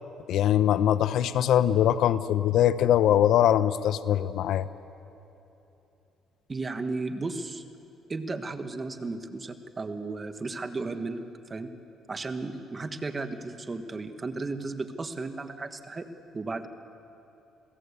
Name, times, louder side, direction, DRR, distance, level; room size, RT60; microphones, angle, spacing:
voice 1, 0.3-4.7, left 11 dB, 70° left, 14 dB, 0.7 m, -22 dB
voice 2, 6.5-7.6 8.1-11.2 11.5-11.7 12.1-16.1 16.3-16.7, right 3 dB, 25° right, 8 dB, 1.5 m, -34 dB
27.0 x 17.0 x 8.3 m, 2.9 s
cardioid pair, 100°, 0 cm